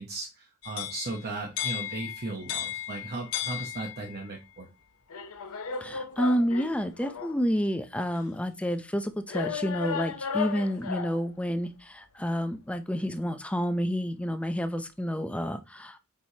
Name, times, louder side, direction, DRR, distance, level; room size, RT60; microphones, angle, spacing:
voice 1, 0.0-4.7, right 2 dB, 45° right, 0.9 m, -36 dB
sound 1, 0.6-4.3 5.1-7.4 8.1-8.2 9.3-11.3, left 7 dB, 65° left, 0.8 m, -35 dB
voice 2, 5.8-16.0, equal, 5° left, 0.5 m, -29 dB
7.1 x 4.8 x 2.8 m
head